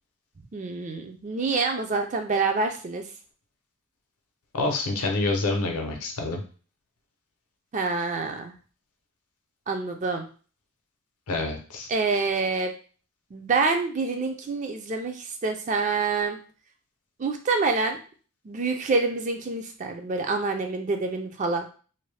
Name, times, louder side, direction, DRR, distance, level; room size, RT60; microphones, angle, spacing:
voice 1, 0.5-3.0 7.7-8.5 9.7-10.3 11.9-12.7 13.3-16.4 17.2-18.0 18.4-21.7, right 4 dB, 35° right, 5 dB, 0.3 m, -27 dB
voice 2, 4.5-6.4 11.3-11.9, left 2 dB, 85° left, 3 dB, 0.7 m, -27 dB
2.6 x 2.1 x 3.2 m, 0.39 s
head